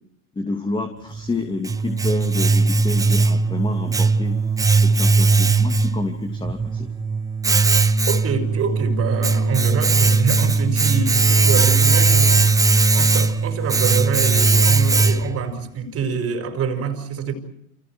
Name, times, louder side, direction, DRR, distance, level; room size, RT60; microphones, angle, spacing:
voice 1, 0.3-4.4 4.8-6.9, left 3 dB, 10° left, 2.9 m, -28 dB
Domestic sounds home sounds, 1.1-15.5, right 3 dB, 10° right, 0.9 m, -18 dB
voice 2, 8.1-12.5 12.9-17.3, right 6 dB, 30° right, 5.3 m, -26 dB
30.0 x 29.5 x 4.7 m
hypercardioid pair, 95°, 45 cm